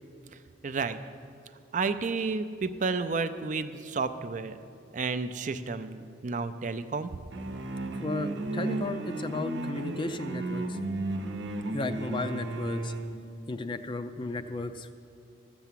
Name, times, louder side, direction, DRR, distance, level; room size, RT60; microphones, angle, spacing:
voice 1, 0.6-1.0 1.7-4.6 4.9-7.1, right 4 dB, 40° right, 10 dB, 0.4 m, -31 dB
sound 1, 7.3-13.2, right 2 dB, 80° right, 0.9 m, -34 dB
voice 2, 8.0-10.8 11.7-12.9 13.5-14.9, left 2 dB, 25° left, 9 dB, 0.4 m, -34 dB
13.5 x 6.9 x 7.5 m, 2.4 s
head